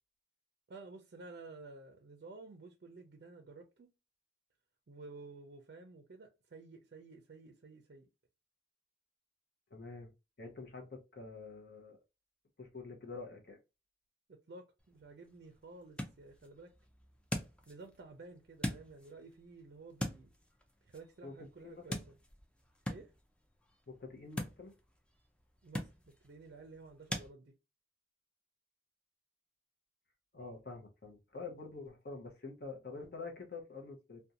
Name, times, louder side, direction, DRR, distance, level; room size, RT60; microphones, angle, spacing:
voice 1, 0.7-3.9 4.9-8.1 14.3-16.7 17.7-20.3 20.8-22.2 22.9-23.1 25.6-27.5, right 3 dB, 55° right, 0.4 m, -53 dB
voice 2, 9.7-10.1 10.4-12.0 12.6-13.6 21.2-22.0 23.9-24.7 30.3-34.2, left 3 dB, 55° left, 0.7 m, -47 dB
sound 1, 14.8-27.3, left 1 dB, 5° left, 0.4 m, -45 dB
2.5 x 2.2 x 2.7 m
head